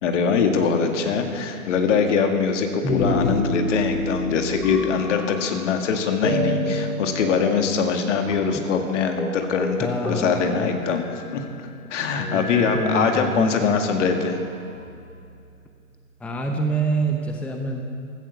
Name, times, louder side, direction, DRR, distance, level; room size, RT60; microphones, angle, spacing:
voice 1, 0.0-11.0 11.3-11.4 11.9-14.4, left 5 dB, 55° left, 4 dB, 2.2 m, -22 dB
voice 2, 2.8-3.4 8.5-8.6 9.8-10.7 12.3-13.8 16.2-17.8, right 1 dB, 5° left, 3 dB, 0.8 m, -26 dB
sound 1, 2.9-5.8 6.2-8.1 8.3-8.4 8.7-8.9 9.2-9.4 9.6-11.3 12.1-13.7 14.4-15.3, left 1 dB, 85° left, 2.8 m, -29 dB
16.0 x 13.0 x 6.9 m, 2.5 s
figure-of-eight pair, 120°, 44 cm